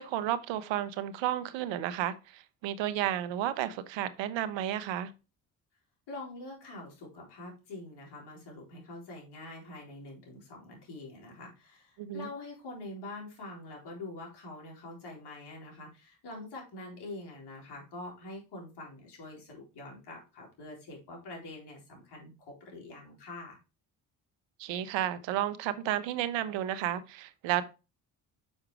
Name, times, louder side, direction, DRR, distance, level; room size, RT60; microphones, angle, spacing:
voice 1, 0.0-5.1 12.0-12.3 24.6-27.6, right 12 dB, 85° right, 0.8 m, -32 dB
voice 2, 6.1-23.6, left 2 dB, 65° left, 3.9 m, -45 dB
6.4 x 4.9 x 4.7 m
supercardioid pair, 65°, 44 cm